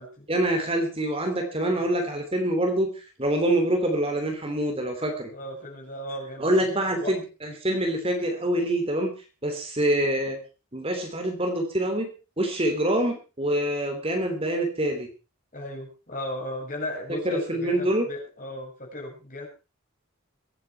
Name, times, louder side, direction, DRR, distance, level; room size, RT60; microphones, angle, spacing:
voice 1, 0.3-5.3 6.4-9.1 9.4-10.4 10.7-12.1 12.4-15.1 17.2-18.0, right 1 dB, 25° right, 4 dB, 3.1 m, -25 dB
voice 2, 5.3-7.1 15.5-19.5, left 1 dB, 40° left, 1 dB, 6.7 m, -36 dB
23.0 x 9.5 x 4.5 m, 0.33 s
head